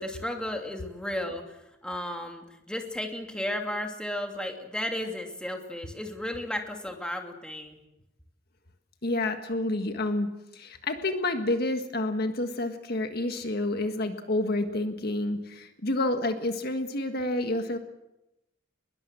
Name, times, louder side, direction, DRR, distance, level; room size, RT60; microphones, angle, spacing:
voice 1, 0.0-1.6 1.8-7.8, left 1 dB, 5° left, 3 dB, 2.7 m, -34 dB
voice 2, 9.0-17.8, left 2 dB, 50° left, 6 dB, 1.7 m, -29 dB
24.0 x 21.5 x 7.6 m, 0.91 s
head